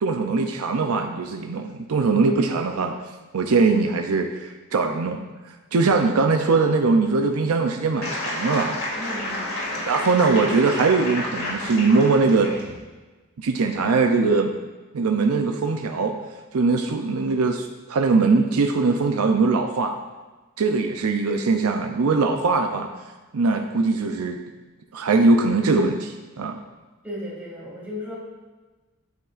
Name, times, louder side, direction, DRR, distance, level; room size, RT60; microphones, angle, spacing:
voice 1, 0.0-2.9 3.3-5.2 5.7-8.8 9.9-12.5 13.4-14.5 14.9-16.2 16.5-19.9 20.6-22.9 23.3-24.4 24.9-26.6, right 3 dB, 80° right, 4 dB, 0.5 m, -21 dB
sound 1, 8.0-12.7, left 1 dB, 75° left, 2.4 m, -30 dB
voice 2, 9.0-9.6 27.0-28.2, left 1 dB, 10° right, -6 dB, 2.2 m, -35 dB
9.2 x 7.0 x 2.5 m, 1.2 s
head